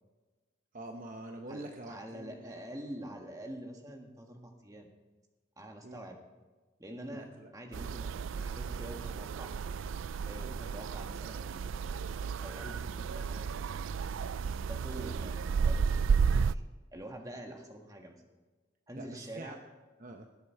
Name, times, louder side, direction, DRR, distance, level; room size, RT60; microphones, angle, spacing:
voice 1, 0.7-2.6 5.8-6.0 7.1-7.5 10.4-10.6 15.0-15.1 19.0-19.6 20.0-20.3, right 1 dB, 40° right, 4 dB, 0.8 m, -46 dB
voice 2, 1.5-4.9 5.6-6.2 6.8-7.3 7.5-9.6 10.2-13.9 14.7-16.6 16.9-18.2 18.9-19.6, right 1 dB, 15° right, 2 dB, 1.5 m, -46 dB
sound 1, 7.7-16.5, right 6 dB, 85° right, 0.4 m, -33 dB
19.5 x 8.2 x 4.6 m, 1.3 s
head